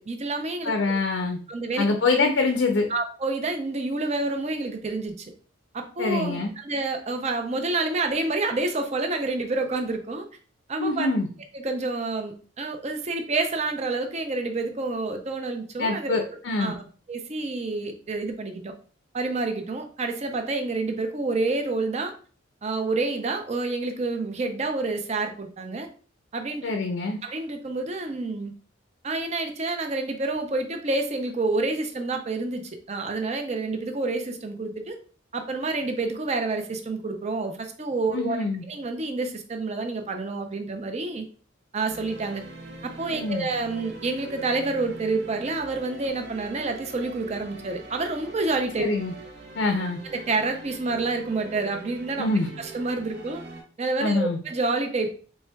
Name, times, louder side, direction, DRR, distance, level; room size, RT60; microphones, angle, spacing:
voice 1, 0.1-1.0 1.5-1.9 2.2-2.3 2.9-5.3 5.7-10.3 10.7-11.1 11.5-16.2 16.6-16.8 17.1-18.7 19.1-22.1 22.6-25.9 26.3-26.6 27.2-28.5 29.0-34.9 35.3-38.4 38.7-41.2 41.7-42.4 42.8-48.8 50.0-52.3 52.6-53.4 53.8-55.1, right 3 dB, 35° right, 5 dB, 0.5 m, -28 dB
voice 2, 0.6-1.4 1.8-2.9 6.0-6.5 10.8-11.3 15.8-16.7 26.6-27.2 38.1-38.6 43.1-43.5 48.8-49.1 49.6-50.0 52.2-52.5 54.0-54.4, left 3 dB, 65° left, 3 dB, 0.5 m, -25 dB
sound 1, 41.9-53.6, right 2 dB, 60° right, 0.8 m, -43 dB
4.2 x 3.3 x 2.2 m, 0.40 s
head